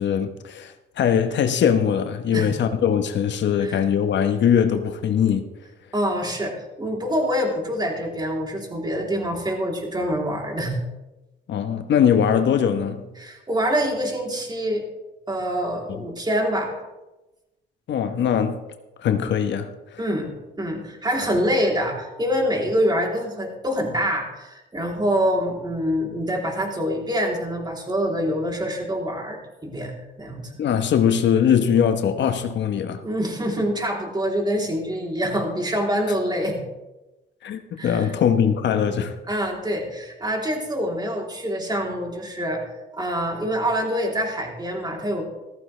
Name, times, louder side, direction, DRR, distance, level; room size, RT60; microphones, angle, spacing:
voice 1, 0.0-5.4 11.5-13.1 17.9-18.6 19.0-20.0 30.6-33.0 37.4-39.2, left 8 dB, 65° left, 1.0 m, -21 dB
voice 2, 5.9-10.8 13.2-14.8 15.3-16.8 20.0-29.9 30.2-30.5 33.0-36.6 37.8-38.1 39.3-42.6 42.9-45.2, equal, 20° right, 3.2 m, -25 dB
14.5 x 14.5 x 3.3 m
cardioid pair, 90°, 20 cm